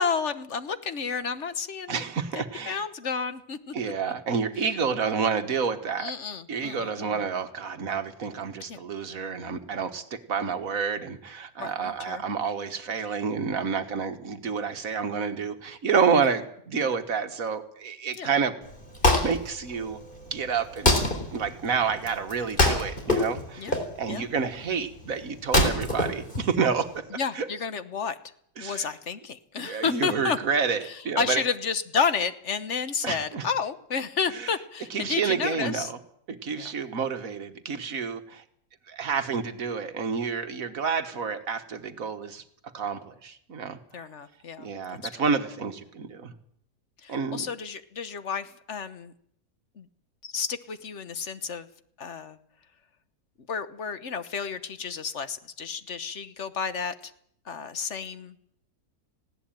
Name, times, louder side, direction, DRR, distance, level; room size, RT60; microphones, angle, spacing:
voice 1, 0.0-2.0 2.7-3.9 6.0-7.2 8.7-8.8 11.6-12.2 18.2-18.3 23.6-23.8 24.1-24.3 27.1-28.1 28.6-30.4 31.2-35.9 36.5-36.7 43.9-44.7 47.0-49.1 49.8-49.9 50.2-51.7 52.0-52.4 53.5-56.9 57.5-58.3, left 6 dB, 50° left, 12 dB, 1.3 m, -31 dB
voice 2, 1.9-2.8 3.7-6.1 6.5-18.6 19.2-20.0 20.3-21.0 21.3-27.1 27.3-27.5 28.6-28.9 29.6-31.4 33.0-33.5 34.3-34.5 34.9-36.0 36.3-38.4 38.9-42.4 42.7-44.0 44.6-46.3 47.1-47.5, right 6 dB, 55° right, 9 dB, 1.9 m, -29 dB
Wood, 18.6-27.0, left 1 dB, 30° left, 4.1 m, -26 dB
19.5 x 17.0 x 8.9 m, 0.69 s
omnidirectional pair, 1.7 m